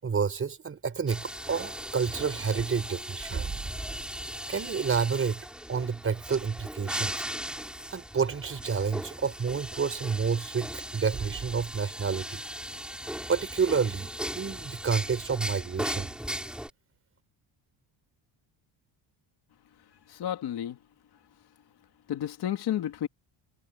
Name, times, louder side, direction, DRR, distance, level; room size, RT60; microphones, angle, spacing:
voice 1, 0.0-3.6 4.5-5.4 5.7-7.1 7.9-12.4 13.3-14.1 14.3-16.1, right 6 dB, 25° right, 5.1 m, -29 dB
sound 1, 1.1-16.7, equal, ahead, 5.0 m, -38 dB
voice 2, 20.1-20.8 22.1-23.1, left 11 dB, 50° left, 2.4 m, -31 dB
cardioid pair, 165°, 48 cm